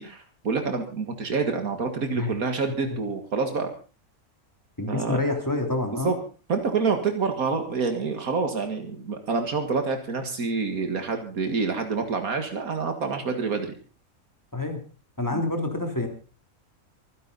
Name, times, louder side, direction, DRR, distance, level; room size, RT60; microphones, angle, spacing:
voice 1, 0.0-3.7 4.9-5.2 6.0-6.2 6.5-13.8 15.3-15.4, right 4 dB, 80° right, 6 dB, 2.2 m, -27 dB
voice 2, 4.8-6.1 14.5-14.8 15.2-16.1, left 2 dB, 15° left, 4 dB, 3.3 m, -27 dB
24.5 x 11.0 x 4.0 m, 0.35 s
omnidirectional pair, 1.5 m